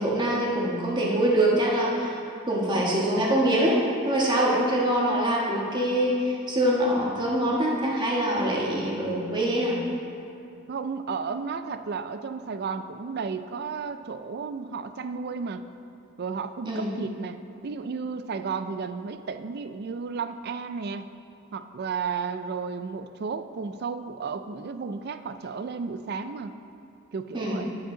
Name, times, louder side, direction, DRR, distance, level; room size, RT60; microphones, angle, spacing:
voice 1, 0.0-2.2 2.5-3.8 4.0-9.8 16.7-16.9 27.3-27.6, right 1 dB, 20° right, -4 dB, 1.3 m, -24 dB
voice 2, 10.7-15.6 16.2-21.1 21.5-26.6 27.1-27.7, right 5 dB, 45° right, 10 dB, 0.3 m, -33 dB
11.0 x 7.5 x 3.8 m, 2.6 s
head